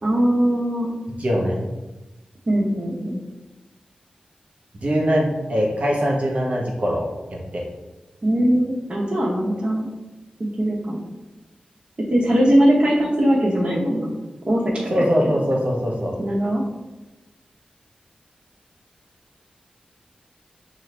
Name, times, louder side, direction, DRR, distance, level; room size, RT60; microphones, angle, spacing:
voice 1, 0.0-1.0 2.5-3.2 8.2-9.9 10.6-11.0 12.1-14.1 14.4-15.4 16.2-16.6, equal, 40° right, -5 dB, 0.9 m, -20 dB
voice 2, 1.2-1.6 4.7-7.0 7.3-7.6 14.9-16.1, equal, 60° right, -2 dB, 1.1 m, -22 dB
5.5 x 2.5 x 3.3 m, 1.1 s
cardioid pair, 50°, 3 cm